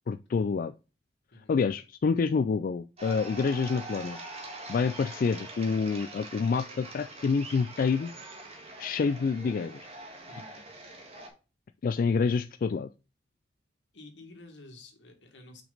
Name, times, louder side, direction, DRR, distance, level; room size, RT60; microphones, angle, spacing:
voice 1, 0.1-0.7 1.5-4.2 4.7-8.1 8.8-9.8 11.8-12.9, left 5 dB, 50° left, 10 dB, 0.3 m, -27 dB
sound 1, 3.0-11.3, right 2 dB, 35° right, 1.6 m, -44 dB
voice 2, 10.3-10.6 13.9-15.6, left 2 dB, 80° left, 3 dB, 2.0 m, -50 dB
6.0 x 5.1 x 3.9 m, 0.31 s
head